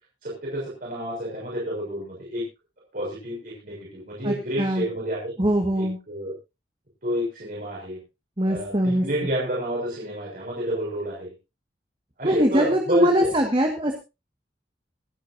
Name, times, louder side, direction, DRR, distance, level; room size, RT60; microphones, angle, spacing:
voice 1, 0.2-2.4 2.9-5.3 5.8-6.3 7.0-8.0 8.4-11.3 12.2-13.3, equal, 50° right, -5 dB, 6.6 m, -29 dB
voice 2, 4.2-4.9 5.4-6.0 8.4-9.0 12.2-13.9, equal, 30° right, 3 dB, 1.8 m, -22 dB
26.0 x 10.0 x 2.7 m, 0.27 s
head